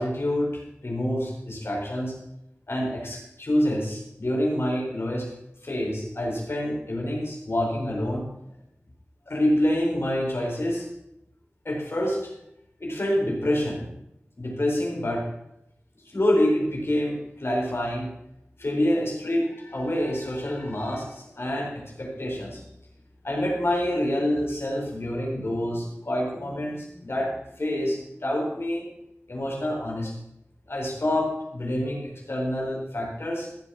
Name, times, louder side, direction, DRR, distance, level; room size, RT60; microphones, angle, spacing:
voice 1, 0.0-2.2 2.7-5.3 5.6-8.2 9.3-10.9 11.6-12.3 12.8-13.9 14.4-15.2 16.0-18.1 18.6-22.6 23.2-27.3 27.6-28.9 29.3-30.1 30.7-33.5, left 1 dB, 55° left, -1 dB, 4.8 m, -27 dB
15.0 x 7.8 x 6.0 m, 0.83 s
wide cardioid pair, 45°, 5 cm